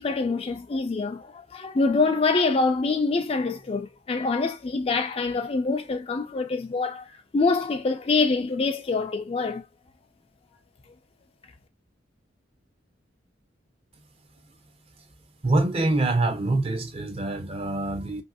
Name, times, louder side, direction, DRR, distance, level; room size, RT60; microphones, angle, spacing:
voice 1, 0.0-7.1 7.3-9.6, left 3 dB, 30° left, 0.4 m, -25 dB
voice 2, 15.4-18.2, right 2 dB, 35° right, 0.6 m, -25 dB
2.9 x 2.6 x 2.3 m
head